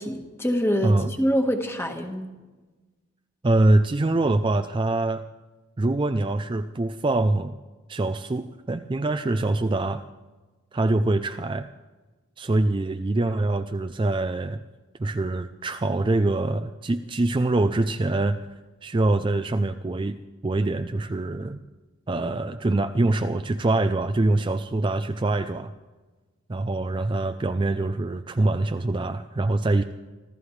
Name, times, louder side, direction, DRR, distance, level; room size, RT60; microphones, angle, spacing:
voice 1, 0.0-2.3, equal, 10° left, 4 dB, 1.4 m, -25 dB
voice 2, 3.4-5.2 5.8-7.6 7.9-10.0 10.7-11.7 12.4-14.6 15.0-18.4 18.8-20.2 20.4-21.6 22.1-25.7 26.5-29.8, right 2 dB, 25° right, 9 dB, 0.4 m, -24 dB
25.5 x 15.0 x 3.2 m, 1.2 s
head